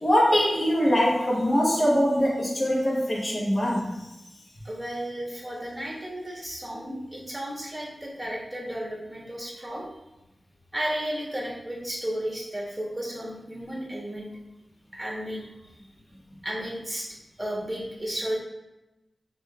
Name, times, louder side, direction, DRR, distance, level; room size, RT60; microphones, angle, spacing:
voice 1, 0.0-4.0, equal, 35° left, -5 dB, 0.9 m, -23 dB
voice 2, 4.6-9.8 10.7-14.3 14.9-15.5 16.4-17.1 17.4-18.4, equal, 15° right, -3 dB, 1.0 m, -33 dB
5.0 x 2.3 x 2.3 m, 0.99 s
wide cardioid pair, 90°, 0 cm